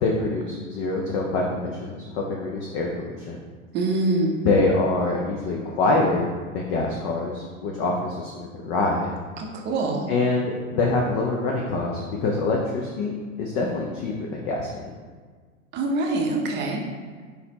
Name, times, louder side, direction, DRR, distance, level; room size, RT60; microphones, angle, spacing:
voice 1, 0.0-3.4 4.4-9.1 10.1-14.9, left 3 dB, 25° left, -1 dB, 0.3 m, -25 dB
voice 2, 3.7-4.4 9.4-10.1 15.7-16.8, right 2 dB, 25° right, 1 dB, 0.6 m, -24 dB
4.0 x 4.0 x 2.8 m, 1.5 s
hypercardioid pair, 100°, 42 cm